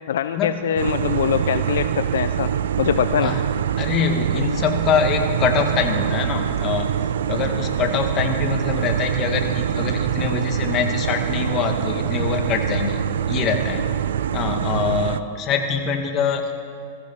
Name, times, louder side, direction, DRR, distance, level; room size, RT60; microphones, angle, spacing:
voice 1, 0.1-2.5 2.8-3.3 4.3-4.4, left 9 dB, 75° left, 11 dB, 0.5 m, -23 dB
sound 1, 0.8-15.2, right 9 dB, 75° right, 0.5 m, -24 dB
voice 2, 3.8-6.9 7.3-13.9 14.3-16.6, left 6 dB, 35° left, 4 dB, 2.1 m, -24 dB
21.0 x 14.5 x 4.4 m, 2.4 s
hypercardioid pair, 110°, 0 cm